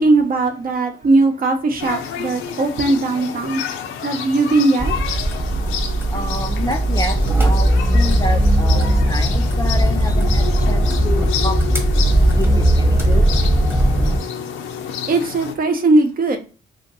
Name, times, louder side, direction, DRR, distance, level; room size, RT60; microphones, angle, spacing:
voice 1, 0.0-3.6 4.0-5.0 15.1-16.4, right 2 dB, 45° right, 6 dB, 0.8 m, -18 dB
sound 1, 1.8-15.5, left 7 dB, 85° left, 0.6 m, -29 dB
sound 2, 4.8-14.2, right 1 dB, 10° right, 1.1 m, -17 dB
voice 2, 6.1-7.2 7.4-11.8 12.3-13.2, left 1 dB, 20° left, 6 dB, 0.4 m, -28 dB
2.6 x 2.5 x 4.0 m, 0.35 s
cardioid pair, 90°, 20 cm